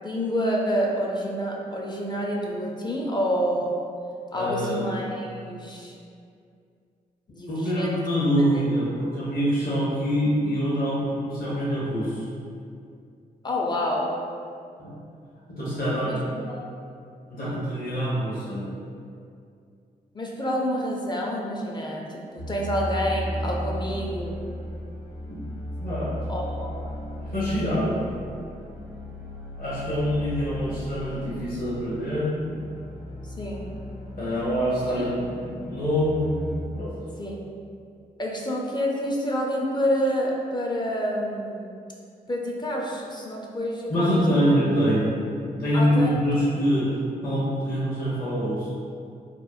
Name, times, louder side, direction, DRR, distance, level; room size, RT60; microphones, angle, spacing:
voice 1, 0.0-3.8 4.3-5.9 7.3-8.0 13.4-14.1 16.0-16.2 16.5-16.6 20.1-24.6 26.3-27.0 33.2-33.7 37.2-37.4 38.2-41.7 42.3-44.5 45.7-46.1, equal, 25° left, -2 dB, 0.5 m, -28 dB
voice 2, 4.3-4.8 7.5-12.2 14.8-14.9 15.5-16.2 17.3-18.7 25.3-25.4 25.8-26.2 27.2-28.1 29.6-32.4 34.2-36.5 36.7-36.9 43.9-45.1 45.4-46.9 47.2-48.7, equal, 50° left, -9 dB, 0.9 m, -25 dB
sound 1, 22.4-36.6, equal, 90° left, 0.5 m, -36 dB
2.8 x 2.0 x 2.4 m, 2.4 s
hypercardioid pair, 40°, 18 cm